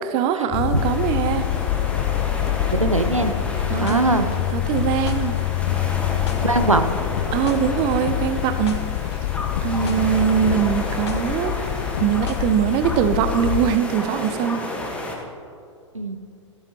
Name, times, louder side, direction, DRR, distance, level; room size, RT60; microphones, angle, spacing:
voice 1, 0.1-1.5 3.7-4.0 4.5-5.4 7.3-8.8 9.6-11.5 12.0-14.6, right 9 dB, 30° right, 10 dB, 0.8 m, -22 dB
sound 1, 0.5-13.8, left 13 dB, 35° left, 0.4 m, -26 dB
sound 2, 0.7-15.2, left 1 dB, 5° left, 1.7 m, -32 dB
voice 2, 2.7-3.3 3.8-4.3 6.4-6.9 9.8-10.0 15.9-16.2, right 2 dB, 90° right, 9 dB, 0.8 m, -21 dB
sound 3, 3.3-12.9, left 6 dB, 55° left, 0.9 m, -34 dB
14.5 x 13.5 x 3.1 m, 2.5 s
figure-of-eight pair, 105°, 16 cm